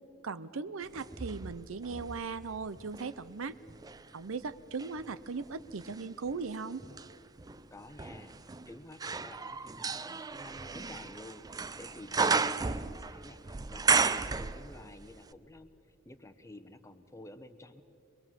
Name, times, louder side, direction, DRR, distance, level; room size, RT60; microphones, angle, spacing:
voice 1, 0.2-3.5 4.1-6.8, right 4 dB, 70° right, 14 dB, 0.6 m, -38 dB
sound 1, 0.9-3.1 3.7-15.0 15.3-15.4, right 4 dB, 20° right, 0.4 m, -34 dB
voice 2, 7.7-15.7 16.0-17.8, left 1 dB, 15° left, 8 dB, 0.9 m, -51 dB
23.0 x 22.5 x 7.4 m, 2.7 s
head